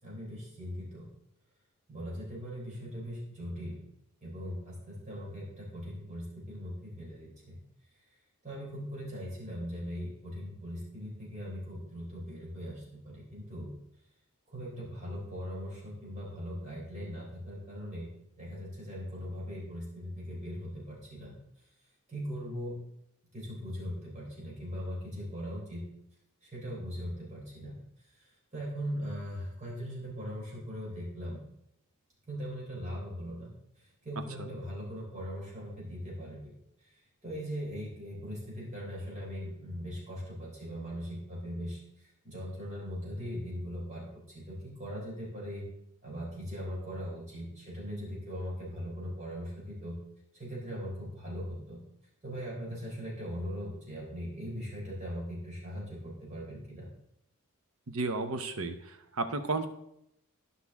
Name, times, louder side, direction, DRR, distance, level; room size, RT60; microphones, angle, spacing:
voice 1, 0.0-1.1 1.9-3.8 4.2-7.6 8.4-13.7 14.5-18.1 18.4-21.3 22.1-22.8 23.3-25.8 26.4-27.8 28.5-31.4 32.3-33.5 34.0-36.5 37.2-41.8 42.2-45.7 46.0-50.0 50.3-51.8 52.2-56.9, equal, 35° right, -5 dB, 3.7 m, -40 dB
voice 2, 34.1-34.5 57.9-59.7, right 3 dB, 75° right, 9 dB, 0.8 m, -34 dB
12.0 x 5.6 x 3.6 m, 0.78 s
head